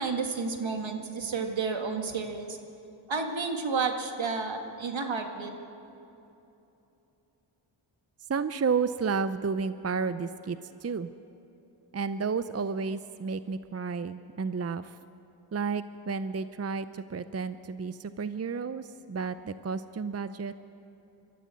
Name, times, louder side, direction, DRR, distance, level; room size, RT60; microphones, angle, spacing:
voice 1, 0.0-2.6 3.1-5.5, right 4 dB, 75° right, 4 dB, 2.0 m, -31 dB
voice 2, 8.3-11.1 11.9-15.0 15.5-20.6, right 5 dB, 30° right, 13 dB, 0.6 m, -32 dB
23.5 x 13.5 x 8.4 m, 2.9 s
cardioid pair, 55°, 47 cm